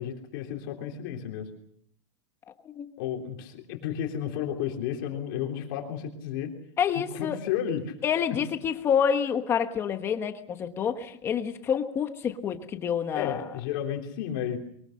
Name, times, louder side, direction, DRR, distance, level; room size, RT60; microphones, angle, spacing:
voice 1, 0.0-1.5 3.0-6.5 7.1-7.9 8.3-8.4 13.1-14.6, left 9 dB, 45° left, 2 dB, 3.3 m, -32 dB
voice 2, 6.8-7.4 8.0-13.4, left 7 dB, 15° left, 8 dB, 1.3 m, -27 dB
23.5 x 20.5 x 6.5 m, 0.66 s
supercardioid pair, 180°, 15 cm